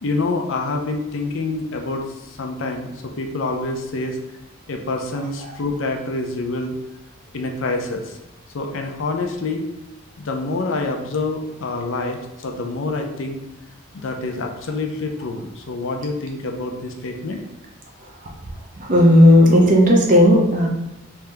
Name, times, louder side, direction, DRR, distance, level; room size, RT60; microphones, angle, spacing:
voice 1, 0.0-4.2 4.7-6.8 7.3-8.2 8.5-9.7 10.2-13.4 13.9-17.4, left 3 dB, 65° left, 3 dB, 0.5 m, -26 dB
voice 2, 18.8-20.7, left 1 dB, 40° right, -1 dB, 0.7 m, -13 dB
3.4 x 2.8 x 3.4 m, 0.98 s
head